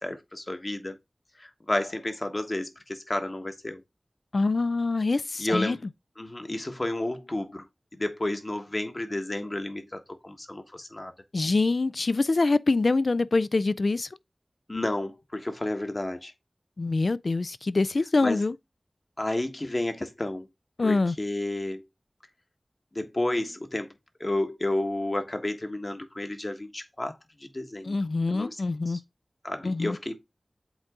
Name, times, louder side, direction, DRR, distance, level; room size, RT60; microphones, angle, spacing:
voice 1, 0.0-1.0 1.4-3.8 5.4-5.8 6.2-7.6 7.9-11.1 14.7-16.3 18.2-18.4 19.2-20.5 20.8-21.8 22.9-23.9 24.2-27.9 28.3-28.6 28.9-29.0 29.4-30.1, left 1 dB, 40° left, 1.3 m, -31 dB
voice 2, 4.3-5.8 11.3-14.1 16.8-18.5 20.8-21.2 27.8-29.0 29.6-30.0, left 3 dB, 70° left, 0.3 m, -25 dB
7.9 x 3.8 x 3.6 m
cardioid pair, 40°, 0 cm